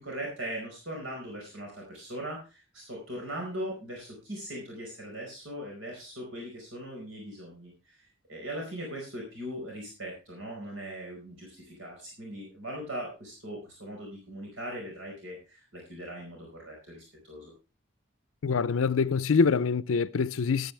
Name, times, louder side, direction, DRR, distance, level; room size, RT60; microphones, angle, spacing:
voice 1, 0.0-7.9 8.3-17.5, right 1 dB, 75° right, 4.9 m, -40 dB
voice 2, 18.4-20.7, left 5 dB, 90° left, 0.5 m, -25 dB
13.0 x 12.5 x 3.3 m
head